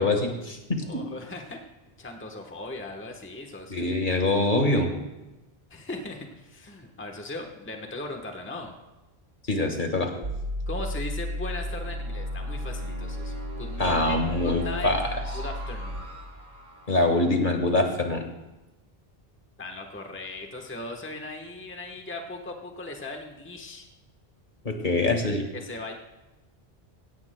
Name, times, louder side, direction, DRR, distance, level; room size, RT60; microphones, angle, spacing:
voice 1, 0.0-1.0 3.7-4.9 9.5-10.1 13.8-15.0 16.9-18.2 24.7-25.4, left 2 dB, 50° left, 3 dB, 1.7 m, -24 dB
voice 2, 0.9-1.6 2.0-3.9 5.7-8.7 10.7-14.2 14.4-14.9 15.3-16.1 19.6-23.9 25.5-25.9, left 2 dB, 10° left, 2 dB, 1.1 m, -38 dB
sound 1, 10.2-17.2, equal, 55° right, 1.4 m, -33 dB
17.0 x 16.5 x 2.2 m, 1.0 s
omnidirectional pair, 1.0 m